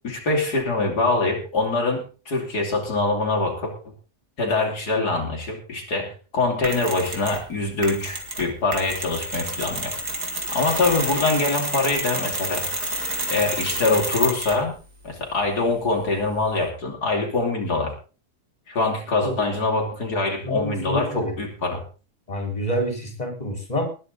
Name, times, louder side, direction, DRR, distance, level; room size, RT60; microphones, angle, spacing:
voice 1, 0.0-3.7 4.4-10.0 10.5-12.7 13.3-14.8 15.0-17.9 18.7-21.8, left 3 dB, 85° left, 1 dB, 3.6 m, -24 dB
Mechanisms, 6.6-7.5 7.8-14.7, right 2 dB, 90° right, 3.4 m, -29 dB
voice 2, 20.4-21.4 22.3-23.8, equal, 25° left, 3 dB, 4.5 m, -27 dB
20.0 x 9.8 x 4.0 m, 0.35 s
omnidirectional pair, 1.7 m